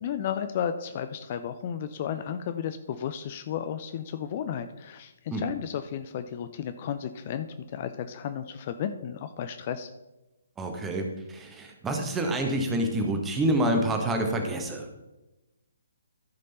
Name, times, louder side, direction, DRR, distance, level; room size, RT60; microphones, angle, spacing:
voice 1, 0.0-9.9, left 8 dB, 35° left, 10 dB, 0.5 m, -33 dB
voice 2, 10.6-14.8, right 1 dB, 10° right, 3 dB, 1.4 m, -27 dB
14.5 x 5.2 x 4.2 m, 1.0 s
figure-of-eight pair, 135°, 0 cm